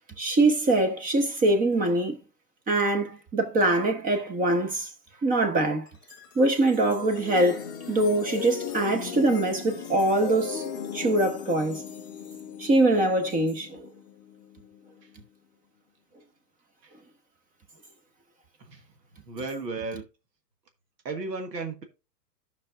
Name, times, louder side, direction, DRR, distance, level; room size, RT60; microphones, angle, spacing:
voice 1, 0.2-2.2 2.7-4.9 5.2-5.9 6.4-11.8 12.6-13.9, right 2 dB, 15° right, 1.0 m, -23 dB
sound 1, 5.9-15.1, left 8 dB, 15° left, 0.3 m, -38 dB
voice 2, 19.3-20.0 21.0-21.8, right 3 dB, 85° right, 1.6 m, -33 dB
14.0 x 5.8 x 2.5 m
hypercardioid pair, 125°, 49 cm